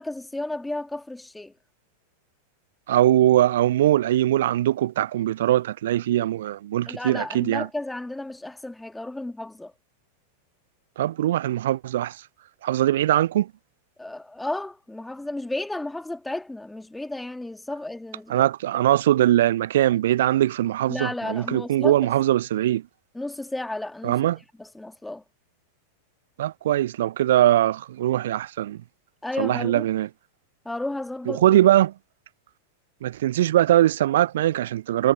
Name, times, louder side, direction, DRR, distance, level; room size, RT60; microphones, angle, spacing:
voice 1, 0.0-1.5 6.9-9.7 14.0-18.5 20.9-22.1 23.1-24.2 24.6-25.2 29.2-29.9 30.6-31.4, left 2 dB, 5° left, 2.4 m, -33 dB
voice 2, 2.9-7.7 11.0-12.2 12.6-13.5 18.3-22.8 24.0-24.4 26.4-28.8 29.4-30.1 31.3-31.9 33.0-35.1, right 13 dB, 60° right, 0.4 m, -21 dB
figure-of-eight pair, 90°, 0 cm